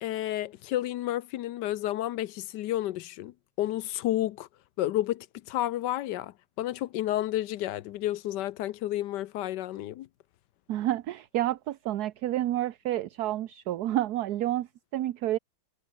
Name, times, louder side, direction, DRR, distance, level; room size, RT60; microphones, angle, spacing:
voice 1, 0.0-4.5 4.8-10.1, left 14 dB, 75° left, 1.2 m, -31 dB
voice 2, 10.7-15.4, right 13 dB, 65° right, 1.2 m, -29 dB
omnidirectional pair, 2.0 m